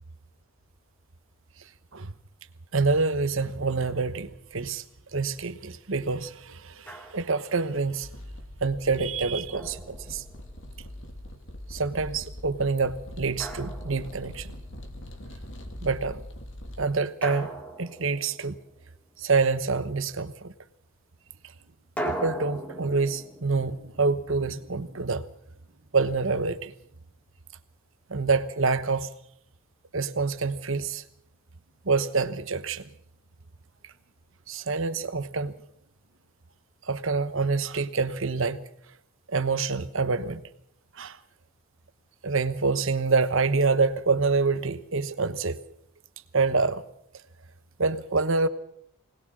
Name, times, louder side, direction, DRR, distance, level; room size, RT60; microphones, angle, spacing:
voice 1, 2.7-4.8 5.1-8.1 8.6-10.2 11.7-14.5 15.8-16.2 16.8-17.5 17.8-18.6 19.2-20.5 22.0-25.2 25.9-26.7 28.1-29.1 29.9-31.0 31.8-32.9 34.5-35.5 36.8-38.6 39.3-40.4 41.0-41.2 42.2-45.6 46.3-46.8 47.8-48.5, right 4 dB, 60° right, 1.1 m, -26 dB
Drum, 6.9-7.5 9.5-10.6 13.4-14.6 17.2-18.9 22.0-24.9, right 1 dB, 5° left, 2.5 m, -39 dB
sound 1, 8.0-16.9, left 1 dB, 55° left, 2.8 m, -42 dB
21.5 x 19.5 x 6.2 m
head